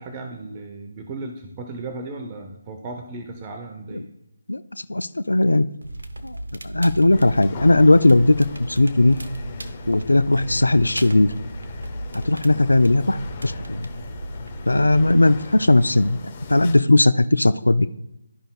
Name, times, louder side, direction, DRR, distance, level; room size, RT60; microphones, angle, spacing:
voice 1, 0.0-4.0, right 3 dB, 25° right, 3 dB, 0.7 m, -35 dB
voice 2, 4.9-5.7 6.2-6.4 6.6-9.2 9.9-11.3 12.3-13.2 13.4-13.9 14.7-17.9, left 2 dB, 90° left, 13 dB, 0.4 m, -17 dB
Crackle, 5.8-15.2, right 1 dB, 85° right, 0.7 m, -36 dB
sound 1, 7.1-16.7, left 4 dB, 30° left, 0.9 m, -39 dB
12.5 x 5.2 x 2.3 m, 0.88 s
figure-of-eight pair, 155°, 0 cm